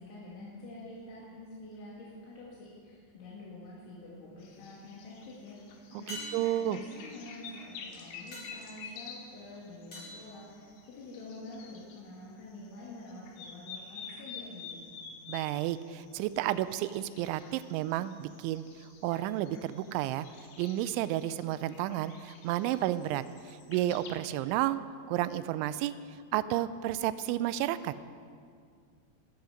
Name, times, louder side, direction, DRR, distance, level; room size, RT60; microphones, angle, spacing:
voice 1, 0.0-6.2 6.6-14.8, left 2 dB, 85° left, -6 dB, 4.8 m, -47 dB
sound 1, 4.3-4.4 6.1-11.2 15.7-15.8, left 1 dB, 30° left, 4.9 m, -48 dB
sound 2, 4.4-12.0 12.4-24.1, left 6 dB, 70° left, 3.5 m, -49 dB
voice 2, 6.1-6.8 15.3-24.8 25.1-25.9 26.3-27.9, right 13 dB, 90° right, 14 dB, 2.9 m, -32 dB
19.0 x 13.0 x 5.2 m, 2.2 s
omnidirectional pair, 5.3 m